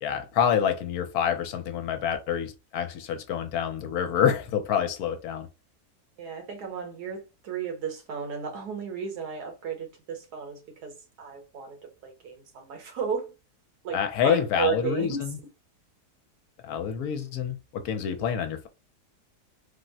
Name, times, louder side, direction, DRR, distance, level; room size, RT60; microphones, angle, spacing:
voice 1, 0.0-5.5 13.9-15.4 16.6-18.7, left 8 dB, 75° left, 1.0 m, -27 dB
voice 2, 6.2-11.8 12.0-13.3 13.8-15.3, right 6 dB, 80° right, 1.5 m, -34 dB
3.5 x 2.0 x 2.6 m
omnidirectional pair, 1.7 m